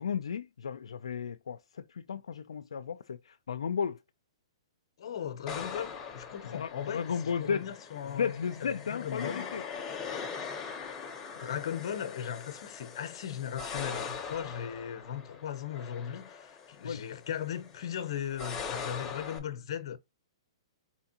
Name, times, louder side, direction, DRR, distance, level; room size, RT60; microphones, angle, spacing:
voice 1, 0.0-4.0 6.5-7.7 8.2-9.6 16.8-17.0, left 6 dB, 90° left, 0.4 m, -34 dB
voice 2, 5.0-8.3 8.6-9.5 11.3-20.0, left 9 dB, 60° left, 0.8 m, -38 dB
sound 1, 5.5-19.4, left 6 dB, 15° left, 0.8 m, -42 dB
4.3 x 3.5 x 2.9 m
hypercardioid pair, 150°, 3 cm